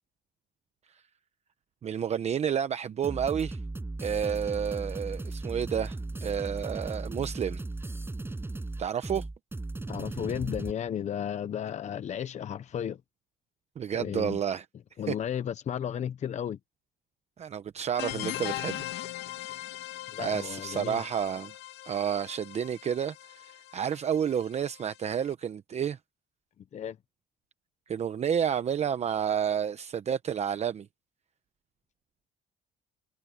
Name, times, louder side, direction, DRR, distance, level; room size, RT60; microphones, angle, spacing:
voice 1, 1.8-3.6 4.0-7.6 8.8-9.3 13.8-14.7 15.1-15.2 17.4-18.9 19.4-19.7 20.2-21.6 21.8-26.0 27.9-30.9, right 8 dB, 40° right, 0.9 m, -30 dB
sound 1, 3.0-10.7, right 2 dB, 15° right, 5.9 m, -36 dB
voice 2, 9.9-13.0 13.9-14.4 15.0-16.6 20.1-21.0 26.7-27.0, left 9 dB, 45° left, 0.8 m, -34 dB
sound 2, 17.9-25.3, left 15 dB, 80° left, 2.4 m, -40 dB
cardioid pair, 110°, 17 cm